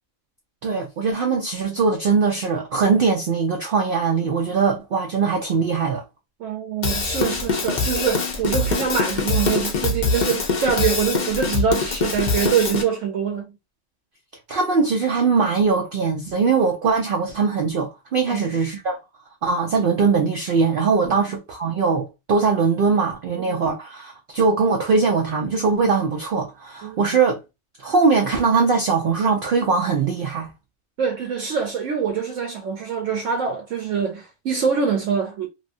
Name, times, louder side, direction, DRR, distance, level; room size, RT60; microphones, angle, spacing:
voice 1, 0.6-6.0 14.5-19.0 19.4-27.4 27.8-30.5, right 4 dB, 85° right, 0.4 m, -21 dB
voice 2, 6.4-13.6 18.3-18.5 21.0-21.2 23.5-23.6 26.8-27.1 31.0-35.5, right 7 dB, 70° right, 0.9 m, -24 dB
Drum kit / Drum, 6.8-12.8, left 4 dB, 55° left, 0.5 m, -23 dB
2.9 x 2.3 x 2.5 m
omnidirectional pair, 1.5 m